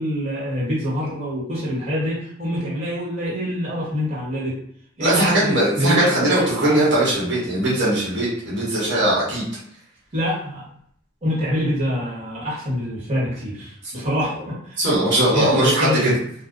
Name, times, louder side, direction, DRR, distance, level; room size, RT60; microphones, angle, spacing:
voice 1, 0.0-4.6 5.0-6.8 10.1-10.6 11.2-14.8 15.3-16.2, equal, 35° right, -7 dB, 1.4 m, -25 dB
voice 2, 5.0-9.4 13.8-14.1 14.8-16.1, right 1 dB, 65° right, -7 dB, 1.2 m, -20 dB
2.6 x 2.3 x 3.6 m, 0.66 s
head